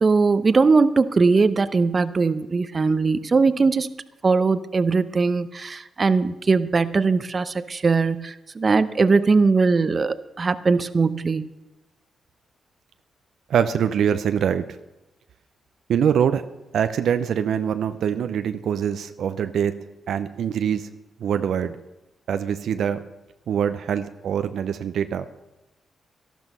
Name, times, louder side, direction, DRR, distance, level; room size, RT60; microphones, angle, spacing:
voice 1, 0.0-3.9 4.2-11.5, right 4 dB, 45° right, 13 dB, 0.8 m, -20 dB
voice 2, 13.5-14.6 15.9-16.4 16.7-19.7 20.1-20.9 21.2-21.8 22.3-23.0 23.5-25.3, right 8 dB, 70° right, 10 dB, 0.7 m, -23 dB
12.5 x 12.5 x 5.5 m, 1.0 s
supercardioid pair, 45°, 0 cm